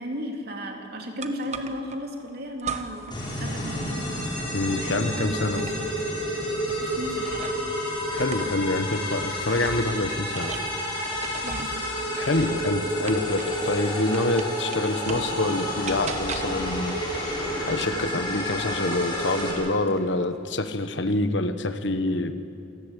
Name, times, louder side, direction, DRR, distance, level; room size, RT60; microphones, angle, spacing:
voice 1, 0.0-4.2 4.7-5.9 6.8-7.4 11.4-11.9, equal, 50° right, 2 dB, 3.3 m, -35 dB
sound 1, 1.2-2.0 2.6-3.2 3.5-7.7 8.1-13.7 14.1-15.4 15.9-16.7 17.7-19.1 19.4-20.0, right 5 dB, 35° right, 1.3 m, -39 dB
sound 2, 3.1-19.5, equal, 25° left, 6.6 m, -30 dB
voice 2, 4.5-5.7 8.1-10.5 12.2-22.3, left 2 dB, 65° left, 10 dB, 1.2 m, -26 dB
27.5 x 19.0 x 8.4 m, 2.7 s
head